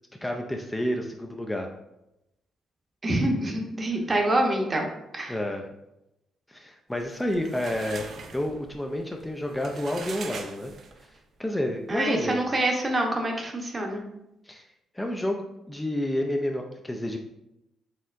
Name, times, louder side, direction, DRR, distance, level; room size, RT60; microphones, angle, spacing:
voice 1, 0.2-1.7 5.3-5.6 6.5-10.7 11.4-12.5 14.4-14.6 14.9-17.2, left 1 dB, 10° left, 2 dB, 0.4 m, -30 dB
voice 2, 3.0-4.9 5.1-5.4 11.9-14.0, right 1 dB, 30° right, 2 dB, 0.8 m, -26 dB
sound 1, 7.0-11.2, right 4 dB, 55° right, 0.5 m, -42 dB
4.3 x 3.4 x 2.5 m, 0.88 s
cardioid pair, 90°, 0 cm